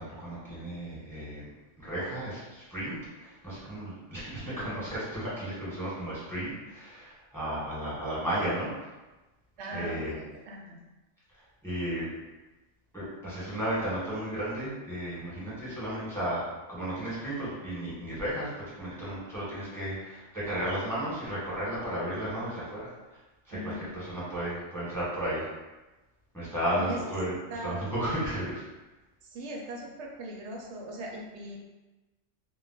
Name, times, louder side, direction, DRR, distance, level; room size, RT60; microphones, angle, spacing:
voice 1, 0.0-1.5 1.8-2.9 3.2-8.7 9.7-10.1 11.6-12.1 12.9-16.4 16.7-18.5 18.8-22.8 23.5-25.4 26.3-27.3 27.6-28.6, right 1 dB, ahead, -9 dB, 1.0 m, -33 dB
voice 2, 9.6-10.8 23.5-23.9 26.8-27.0 27.5-27.8 29.2-31.6, right 1 dB, 75° right, -1 dB, 0.8 m, -39 dB
2.3 x 2.1 x 3.9 m, 1.1 s
omnidirectional pair, 1.2 m